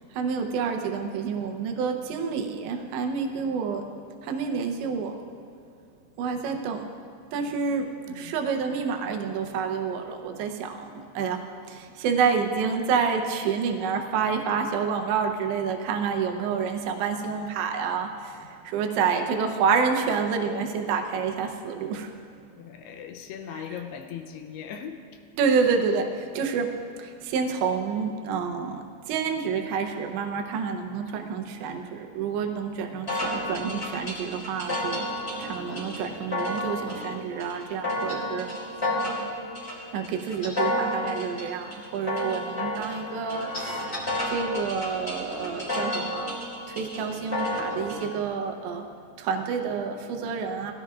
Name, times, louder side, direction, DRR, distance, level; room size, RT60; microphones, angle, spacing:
voice 1, 0.1-3.9 4.2-5.2 6.2-6.8 7.3-22.1 25.4-26.7 27.0-35.1 35.4-38.5 39.9-43.9 44.3-46.3 46.7-48.9 49.2-50.7, right 6 dB, 85° right, 3 dB, 3.2 m, -28 dB
voice 2, 22.6-25.2 30.9-31.0 38.0-38.2, left 8 dB, 80° left, 6 dB, 2.5 m, -40 dB
sound 1, 33.1-48.1, left 1 dB, 15° left, 2.5 m, -31 dB
20.5 x 16.0 x 2.5 m, 2.4 s
omnidirectional pair, 5.1 m